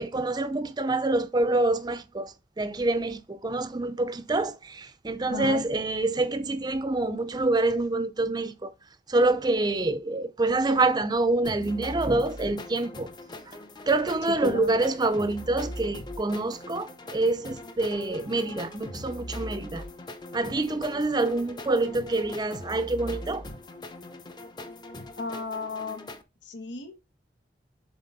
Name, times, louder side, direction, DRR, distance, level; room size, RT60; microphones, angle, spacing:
voice 1, 0.0-8.7 9.1-13.1 13.5-13.6 13.9-19.8 20.3-23.4, right 2 dB, 25° right, 0.5 m, -26 dB
voice 2, 5.3-5.6 14.4-14.8 25.2-26.1 26.4-27.0, left 3 dB, 85° left, 1.5 m, -34 dB
sound 1, 11.4-26.2, left 1 dB, 25° left, 0.8 m, -41 dB
7.4 x 4.3 x 4.0 m
head